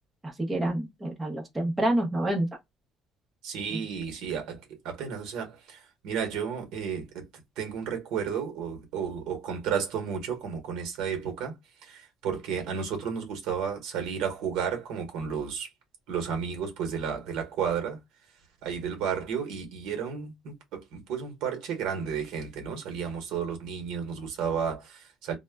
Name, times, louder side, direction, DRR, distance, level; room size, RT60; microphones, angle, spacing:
voice 1, 0.2-2.5 3.7-3.8, right 1 dB, 10° right, 0.6 m, -28 dB
voice 2, 3.4-7.2 7.6-11.6 11.8-15.7 16.1-18.0 18.6-25.3, right 7 dB, 70° right, 0.9 m, -32 dB
2.1 x 2.1 x 3.3 m
cardioid pair, 170°, 0 cm